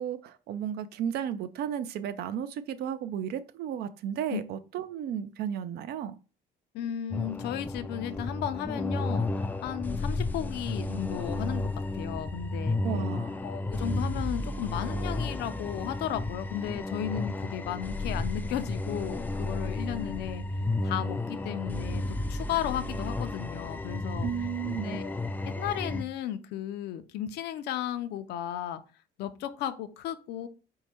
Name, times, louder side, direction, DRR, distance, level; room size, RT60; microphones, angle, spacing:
voice 1, 0.0-6.2 12.8-13.4 24.2-25.0, right 9 dB, 70° right, 0.5 m, -34 dB
voice 2, 6.7-12.8 13.4-20.4 20.8-22.0 22.3-24.3 24.8-25.1 25.5-28.8 29.2-30.5, left 11 dB, 75° left, 0.5 m, -34 dB
sound 1, 7.1-26.0, left 2 dB, 10° left, 0.3 m, -32 dB
4.6 x 2.2 x 4.2 m
cardioid pair, 110°, 17 cm